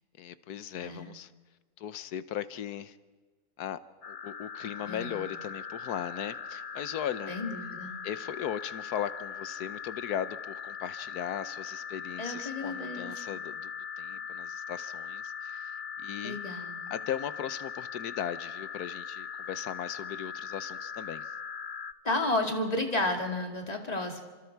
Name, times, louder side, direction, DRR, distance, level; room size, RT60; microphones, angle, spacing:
voice 1, 0.2-1.3 1.8-2.9 3.6-3.8 4.1-7.3 8.0-13.7 14.0-15.7 16.0-16.4 16.9-21.3, left 10 dB, 85° left, 14 dB, 1.4 m, -37 dB
sound 1, 4.0-21.9, left 6 dB, 40° left, 0.8 m, -40 dB
voice 2, 4.8-5.2 7.3-7.9 12.2-13.4 14.1-14.2 16.2-16.9 22.0-24.2, left 2 dB, 25° left, 3 dB, 2.5 m, -32 dB
29.5 x 26.0 x 4.6 m, 1.4 s
omnidirectional pair, 1.6 m